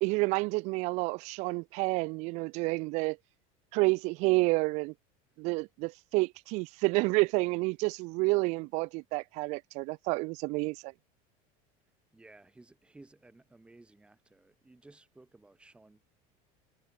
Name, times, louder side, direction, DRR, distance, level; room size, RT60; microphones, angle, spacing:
voice 1, 0.0-3.2 3.7-4.9 5.4-10.9, right 26 dB, 40° right, 0.4 m, -29 dB
voice 2, 12.1-16.0, right 2 dB, 5° right, 5.7 m, -57 dB
cardioid pair, 180°, 18 cm